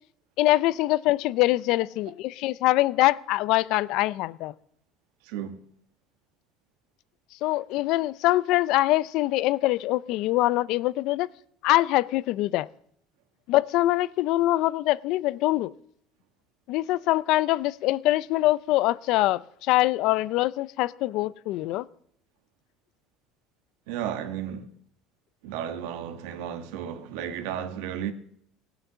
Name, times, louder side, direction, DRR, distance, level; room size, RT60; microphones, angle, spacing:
voice 1, 0.4-4.5 7.4-11.3 11.6-12.7 13.5-15.7 16.7-21.8, left 17 dB, 60° left, 0.5 m, -24 dB
voice 2, 5.2-5.6 23.9-24.7 25.4-28.1, right 9 dB, 85° right, 1.4 m, -33 dB
17.0 x 9.2 x 6.9 m
cardioid pair, 155°, 0 cm